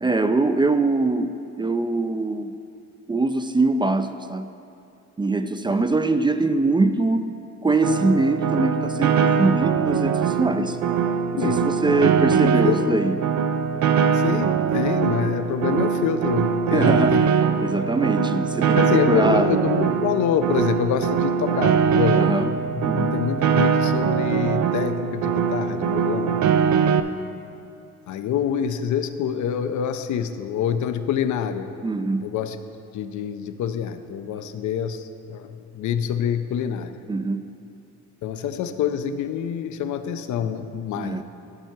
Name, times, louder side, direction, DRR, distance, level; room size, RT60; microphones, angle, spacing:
voice 1, 0.0-2.5 3.1-4.5 5.2-7.3 7.6-10.8 11.3-13.2 16.7-17.2 17.6-19.5 22.2-22.5 22.8-23.2 31.8-32.3 37.1-37.4 40.9-41.2, right 3 dB, 15° right, 9 dB, 0.4 m, -23 dB
Piano, 7.8-27.0, right 7 dB, 70° right, 0.5 m, -22 dB
voice 2, 12.0-13.0 14.1-17.2 18.8-26.4 28.1-31.8 32.2-32.6 32.9-37.0 38.2-41.2, left 8 dB, 75° left, 9 dB, 0.6 m, -26 dB
12.0 x 4.4 x 5.9 m, 2.6 s
cardioid pair, 90°, 30 cm